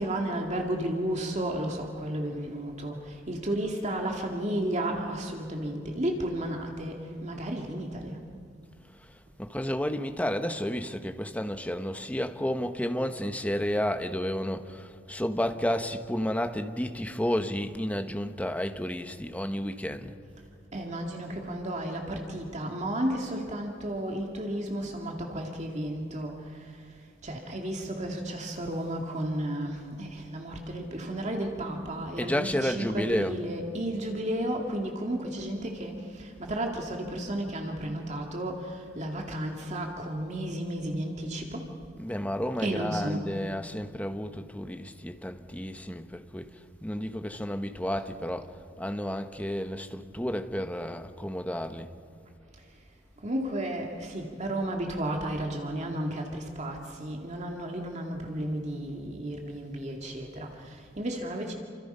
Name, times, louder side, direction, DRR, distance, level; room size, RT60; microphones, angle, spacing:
voice 1, 0.0-8.2 20.7-26.8 27.2-41.7 42.6-43.3 53.2-61.5, right 1 dB, 35° right, 2.2 m, -33 dB
voice 2, 9.4-20.1 32.2-33.4 42.0-46.4 46.8-48.5 48.8-51.9, equal, 5° left, 1.2 m, -31 dB
29.5 x 26.0 x 5.6 m
head